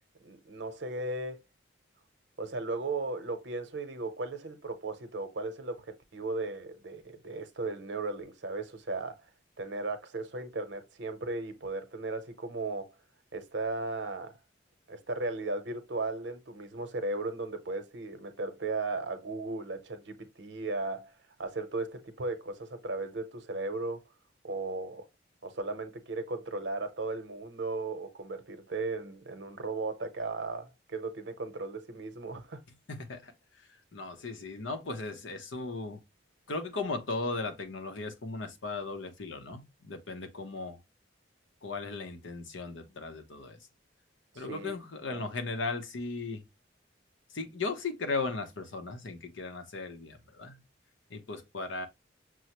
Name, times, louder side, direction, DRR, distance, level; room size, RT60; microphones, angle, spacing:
voice 1, 0.2-1.4 2.4-9.3 9.6-12.9 13.3-14.4 14.9-21.1 21.4-24.0 24.4-25.1 25.4-32.6 44.3-44.7 45.1-45.3, right 3 dB, 65° right, 0.8 m, -36 dB
voice 2, 32.9-33.3 33.9-36.0 36.5-40.8 41.6-43.6 44.4-46.4 47.3-50.6 51.1-51.9, left 3 dB, 85° left, 0.8 m, -37 dB
6.1 x 2.1 x 2.9 m
head